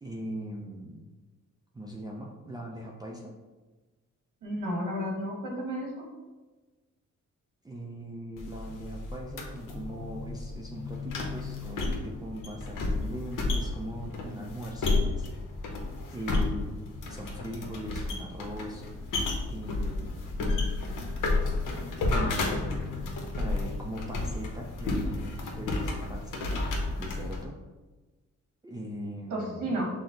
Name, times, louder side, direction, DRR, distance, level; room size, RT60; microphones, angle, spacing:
voice 1, 0.0-1.1 1.7-3.3 7.6-15.3 16.1-18.9 19.4-20.5 22.0-23.0 23.4-26.7 27.0-27.5 28.6-29.8, right 1 dB, 15° right, -3 dB, 0.4 m, -40 dB
voice 2, 4.4-6.1 29.3-29.9, equal, 90° right, -1 dB, 1.3 m, -32 dB
sound 1, 8.4-27.4, left 2 dB, 85° left, 0.8 m, -32 dB
5.9 x 2.0 x 3.8 m, 1.2 s
wide cardioid pair, 135°, 31 cm